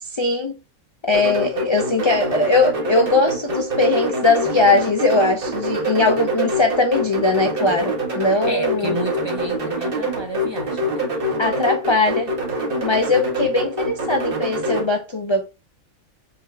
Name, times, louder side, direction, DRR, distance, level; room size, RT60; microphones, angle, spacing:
voice 1, 0.0-0.6 1.0-9.0 11.4-12.3 12.8-15.5, left 3 dB, 40° left, 0.4 m, -20 dB
sound 1, 1.1-14.9, right 1 dB, 40° right, 1.5 m, -25 dB
voice 2, 8.4-11.1, right 1 dB, 20° right, 0.9 m, -31 dB
6.4 x 3.6 x 2.2 m
omnidirectional pair, 1.5 m